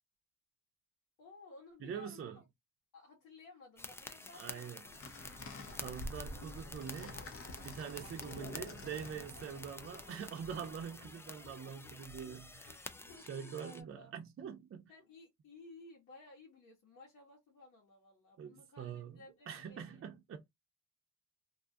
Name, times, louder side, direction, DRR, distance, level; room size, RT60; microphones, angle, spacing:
voice 1, 1.2-2.4 2.9-5.8 8.0-8.2 13.0-14.1 14.9-20.1, left 3 dB, 80° left, 1.3 m, -57 dB
voice 2, 1.8-2.4 4.3-4.8 5.8-7.2 7.6-12.8 13.3-14.9 18.4-19.2 19.5-20.4, right 7 dB, 45° right, 0.7 m, -44 dB
sound 1, 3.8-13.8, left 2 dB, 10° left, 0.3 m, -50 dB
sound 2, 4.8-10.9, left 2 dB, 50° left, 0.7 m, -49 dB
sound 3, 6.7-13.3, left 4 dB, 65° left, 1.4 m, -60 dB
2.7 x 2.3 x 2.6 m
cardioid pair, 90°, 30 cm